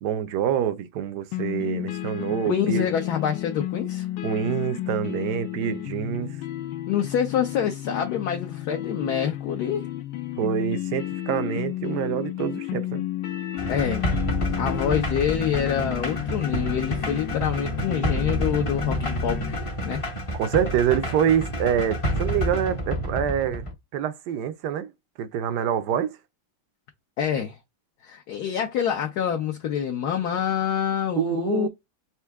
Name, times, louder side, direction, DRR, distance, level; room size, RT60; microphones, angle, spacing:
voice 1, 0.0-2.9 4.2-6.4 10.4-13.1 20.4-23.6 23.9-24.9 25.2-26.2 31.2-31.7, right 9 dB, 70° right, 1.1 m, -26 dB
sound 1, 1.3-19.6, left 13 dB, 80° left, 1.4 m, -32 dB
voice 2, 2.4-4.1 6.9-9.9 13.7-14.1 14.6-20.0 27.2-27.6 28.0-31.7, left 8 dB, 65° left, 1.2 m, -26 dB
sound 2, 13.6-23.7, equal, 30° left, 0.6 m, -29 dB
4.5 x 2.7 x 3.5 m
omnidirectional pair, 2.1 m